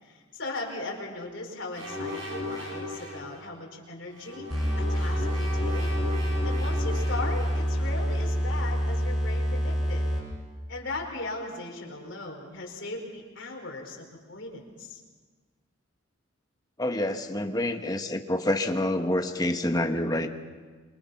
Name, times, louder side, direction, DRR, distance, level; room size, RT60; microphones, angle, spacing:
voice 1, 0.0-4.4 4.8-5.9 6.4-10.1 10.7-15.0, left 2 dB, 60° left, 1 dB, 4.8 m, -38 dB
sound 1, 1.7-3.3 4.1-7.7, left 2 dB, 65° right, 8.0 m, -36 dB
sound 2, 4.5-10.4, equal, ahead, 6.1 m, -27 dB
voice 2, 16.8-20.3, left 1 dB, 20° left, 6 dB, 1.1 m, -27 dB
28.5 x 24.0 x 5.8 m, 1.4 s
head